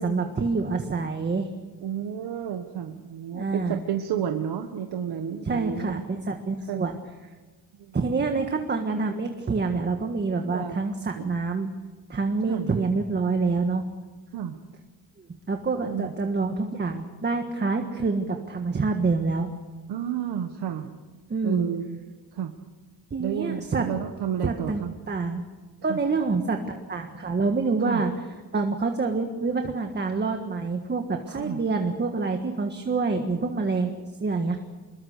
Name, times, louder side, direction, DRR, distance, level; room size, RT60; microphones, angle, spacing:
voice 1, 0.0-1.5 3.3-3.8 5.4-7.0 7.9-11.7 12.1-13.9 15.5-19.5 21.3-21.7 23.1-23.9 24.4-25.4 25.8-28.1 28.5-34.6, right 4 dB, 25° right, 5 dB, 1.6 m, -27 dB
voice 2, 1.8-6.0 6.7-6.9 7.8-8.0 10.5-10.8 11.2-11.3 12.5-12.7 14.3-14.6 15.8-16.1 19.9-20.9 21.4-22.0 22.3-22.5 23.2-24.9 25.9-26.0 27.9-28.0 31.3-31.6, right 9 dB, 85° right, 5 dB, 1.5 m, -31 dB
26.0 x 22.0 x 6.6 m, 1.3 s
wide cardioid pair, 150°, 39 cm